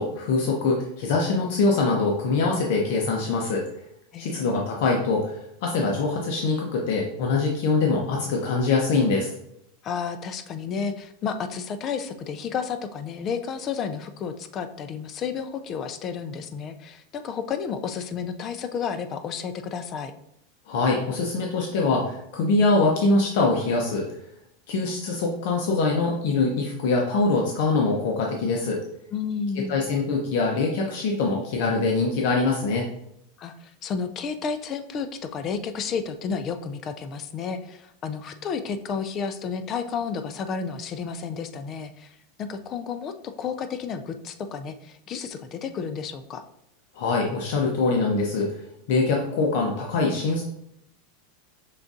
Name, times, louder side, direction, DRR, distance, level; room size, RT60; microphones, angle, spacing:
voice 1, 0.0-3.6 4.2-9.3 20.7-24.1 24.7-28.8 29.7-32.8 46.9-50.4, left 3 dB, 60° left, 0 dB, 0.8 m, -23 dB
voice 2, 4.1-4.5 9.8-20.1 29.1-29.8 33.4-46.4, left 6 dB, 30° left, 9 dB, 0.4 m, -31 dB
5.7 x 3.5 x 2.6 m, 0.77 s
supercardioid pair, 145°, 0 cm